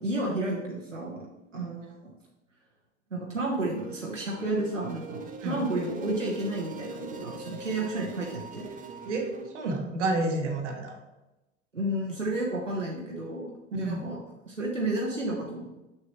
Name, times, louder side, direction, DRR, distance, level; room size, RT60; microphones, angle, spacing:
voice 1, 0.0-1.3 1.5-2.1 3.1-8.7 11.7-14.2 14.4-15.8, right 1 dB, 85° right, -3 dB, 1.1 m, -31 dB
sound 1, 3.5-9.5, right 4 dB, 20° right, 0.8 m, -42 dB
voice 2, 9.0-11.0 13.7-14.1, right 2 dB, 70° right, 3 dB, 1.3 m, -30 dB
6.9 x 6.6 x 3.1 m, 1.0 s
figure-of-eight pair, 75°, 37 cm